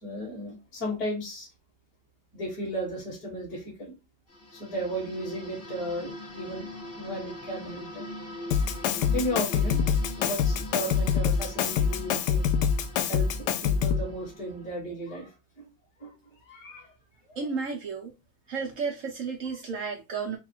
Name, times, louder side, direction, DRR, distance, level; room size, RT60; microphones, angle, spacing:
voice 1, 0.0-1.5 2.3-3.9 4.5-6.7 7.0-8.1 9.1-9.9 10.2-12.4 13.1-15.3 16.0-16.1 16.5-16.9 17.3-17.6, equal, 45° left, 1.9 m, -35 dB
sound 1, 4.3-14.7, left 1 dB, 20° left, 0.4 m, -42 dB
Drum kit, 8.5-14.1, left 7 dB, 75° left, 1.0 m, -25 dB
voice 2, 17.4-18.1 18.5-20.4, right 5 dB, 70° right, 0.7 m, -32 dB
4.0 x 2.3 x 4.3 m
omnidirectional pair, 2.2 m